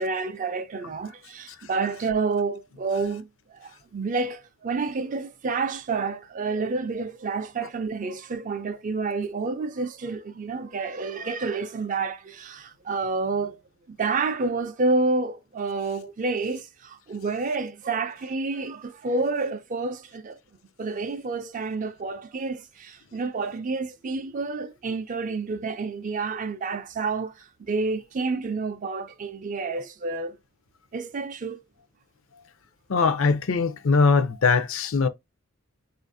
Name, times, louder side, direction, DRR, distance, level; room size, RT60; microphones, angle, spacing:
voice 1, 0.0-13.6 13.9-20.4 20.8-27.3 27.7-30.4 30.9-31.6, right 3 dB, 40° right, 0.4 m, -29 dB
voice 2, 32.9-35.1, left 4 dB, 70° left, 0.5 m, -21 dB
3.9 x 2.5 x 2.6 m
head